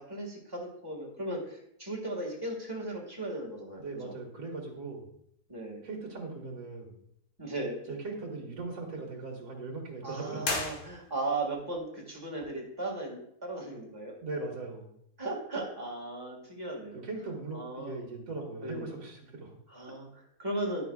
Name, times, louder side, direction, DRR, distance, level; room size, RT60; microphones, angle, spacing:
voice 1, 0.0-4.1 5.5-5.8 7.4-7.8 10.0-14.1 15.2-17.0 17.5-18.0 18.6-18.9 19.7-20.9, right 2 dB, 15° right, -2 dB, 1.6 m, -37 dB
voice 2, 3.8-5.1 5.8-7.0 7.9-10.5 14.2-14.9 16.9-19.6, right 3 dB, 55° right, -1 dB, 1.7 m, -39 dB
sound 1, 10.4-11.4, left 3 dB, 85° left, 1.7 m, -35 dB
10.0 x 5.9 x 2.3 m, 0.71 s
omnidirectional pair, 1.7 m